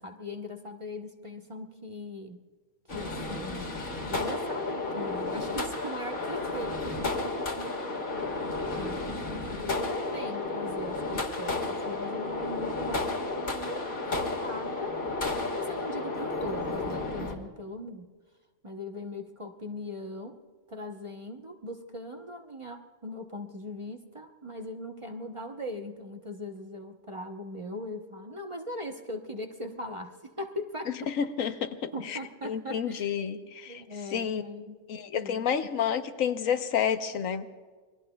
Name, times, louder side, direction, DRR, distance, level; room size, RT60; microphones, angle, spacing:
voice 1, 0.0-2.4 2.9-3.8 4.1-8.0 8.5-15.0 15.4-18.1 18.6-20.4 20.7-31.1 31.5-31.6 31.9-33.1 33.7-34.8 35.1-35.4, left 1 dB, 25° right, 4 dB, 0.9 m, -40 dB
sound 1, 2.9-17.3, left 3 dB, 45° left, 1.9 m, -32 dB
voice 2, 31.1-32.2 32.4-33.8 34.1-34.4 34.9-37.5, left 8 dB, 90° left, 8 dB, 1.3 m, -30 dB
28.0 x 22.0 x 2.3 m, 1.4 s
omnidirectional pair, 1.3 m